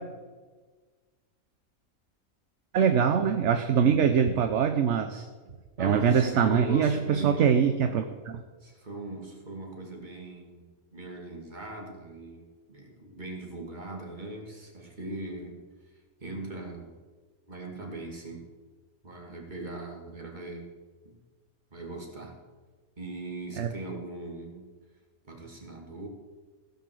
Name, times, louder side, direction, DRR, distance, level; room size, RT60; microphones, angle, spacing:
voice 1, 2.7-5.3 5.8-8.4 23.6-23.7, right 7 dB, 60° right, 8 dB, 0.9 m, -23 dB
voice 2, 5.8-7.5 8.6-10.6 10.9-15.6 16.2-16.9 17.5-18.4 19.0-20.7 21.0-21.2 21.7-22.4 23.0-24.7 25.2-26.1, right 2 dB, 30° right, 1 dB, 2.3 m, -39 dB
16.0 x 5.6 x 7.6 m, 1.4 s
omnidirectional pair, 1.5 m